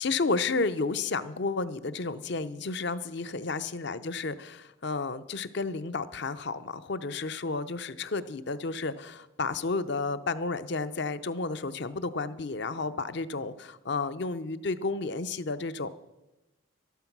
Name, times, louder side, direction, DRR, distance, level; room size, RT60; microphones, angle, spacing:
voice 1, 0.0-15.9, left 3 dB, 55° left, 13 dB, 0.6 m, -32 dB
12.5 x 12.0 x 6.0 m, 1.0 s
head